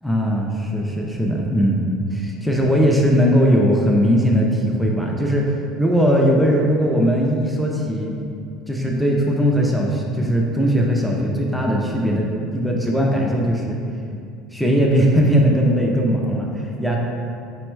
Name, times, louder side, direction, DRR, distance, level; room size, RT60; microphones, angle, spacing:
voice 1, 0.0-5.5 5.8-8.1 8.7-13.8 14.5-17.0, equal, ahead, -2 dB, 0.3 m, -19 dB
4.2 x 2.1 x 4.5 m, 2.5 s
cardioid pair, 155°, 0 cm